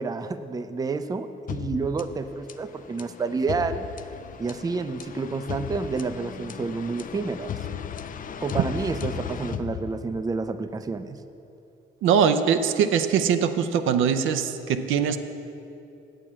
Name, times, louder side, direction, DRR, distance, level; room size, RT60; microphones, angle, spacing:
voice 1, 0.0-3.9 4.4-7.5 8.4-11.2, right 4 dB, 20° right, 10 dB, 0.4 m, -29 dB
sound 1, 1.5-10.4, left 8 dB, 45° left, 0.4 m, -36 dB
voice 2, 12.0-15.2, right 7 dB, 80° right, 8 dB, 0.6 m, -22 dB
8.3 x 7.0 x 7.3 m, 2.8 s
cardioid pair, 90°, 20 cm